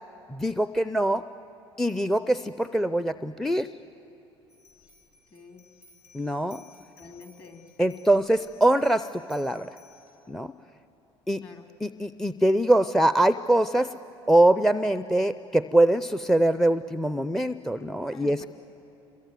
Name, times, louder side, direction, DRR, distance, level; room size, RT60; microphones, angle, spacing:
voice 1, 0.3-1.2 1.8-3.7 6.1-6.6 7.8-9.7 10.3-10.5 11.3-11.4 11.8-13.9 14.3-18.4, right 1 dB, 5° left, 13 dB, 0.5 m, -23 dB
sound 1, 4.5-10.2, left 4 dB, 70° left, 6.5 m, -57 dB
voice 2, 5.3-5.7 7.0-7.6 11.4-11.7 18.1-18.5, left 4 dB, 35° left, 4 dB, 3.1 m, -46 dB
27.0 x 22.5 x 9.4 m, 3.0 s
hypercardioid pair, 65°, 14 cm